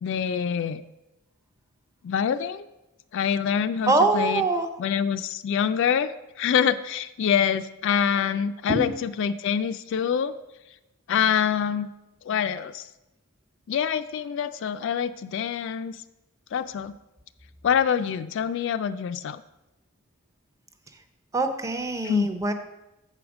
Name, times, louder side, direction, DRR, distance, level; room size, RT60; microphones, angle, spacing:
voice 1, 0.0-0.8 2.0-2.7 3.1-4.4 4.8-10.3 11.1-11.9 12.2-12.9 13.7-16.0 16.5-16.9 17.6-19.4 22.0-22.3, left 8 dB, 55° left, 12 dB, 0.3 m, -25 dB
voice 2, 3.9-4.7 8.7-8.9 21.3-22.5, right 2 dB, 15° right, 7 dB, 0.5 m, -23 dB
7.8 x 4.9 x 6.0 m, 0.96 s
head